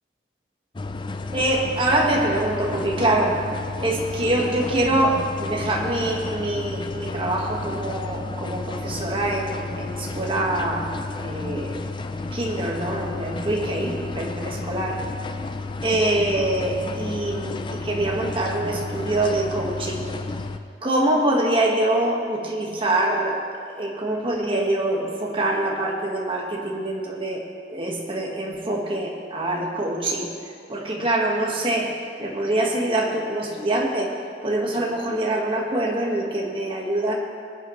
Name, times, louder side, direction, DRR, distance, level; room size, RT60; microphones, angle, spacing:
sound 1, 0.8-20.6, left 3 dB, 25° left, 0.4 m, -32 dB
voice 1, 1.3-3.4 3.8-10.9 11.2-11.8 12.3-15.0 15.8-20.1 20.8-27.4 27.7-30.3 30.7-34.1 34.4-37.1, right 1 dB, 30° right, -2 dB, 1.6 m, -24 dB
19.5 x 9.8 x 3.2 m, 2.5 s
head